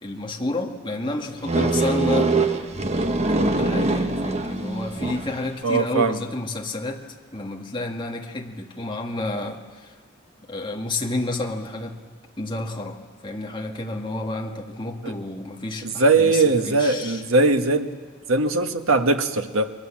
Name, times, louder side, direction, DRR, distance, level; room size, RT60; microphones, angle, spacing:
voice 1, 0.0-2.3 3.3-7.0 7.3-9.9 10.5-11.9 12.4-17.2, left 2 dB, 25° left, 1 dB, 2.0 m, -30 dB
sound 1, 1.4-5.5, right 2 dB, 30° right, 1.2 m, -23 dB
voice 2, 5.6-6.2 15.0-15.1 15.8-17.9 18.3-19.7, right 3 dB, 90° right, 6 dB, 1.4 m, -20 dB
28.5 x 22.0 x 7.5 m, 1.5 s
head